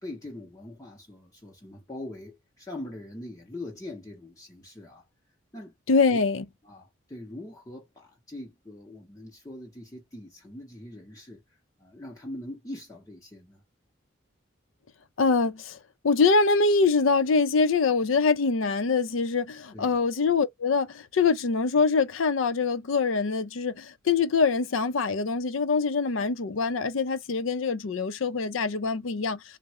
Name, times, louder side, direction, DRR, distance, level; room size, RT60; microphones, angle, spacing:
voice 1, 0.0-5.1 5.5-5.7 6.1-6.2 6.6-13.6 19.7-20.0, left 1 dB, 15° left, 0.6 m, -42 dB
voice 2, 5.9-6.4 15.2-15.8 16.0-29.6, left 4 dB, 80° left, 0.5 m, -24 dB
3.6 x 2.0 x 3.0 m
head